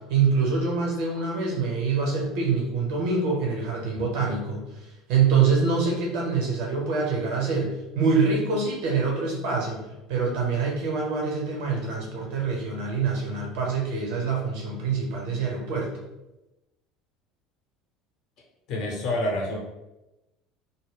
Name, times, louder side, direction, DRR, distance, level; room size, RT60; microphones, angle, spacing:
voice 1, 0.1-9.8 10.1-15.9, right 5 dB, 60° right, -1 dB, 0.8 m, -25 dB
voice 2, 18.7-19.6, left 1 dB, 50° left, -1 dB, 0.8 m, -27 dB
2.2 x 2.0 x 3.5 m, 0.97 s
figure-of-eight pair, 65°, 0 cm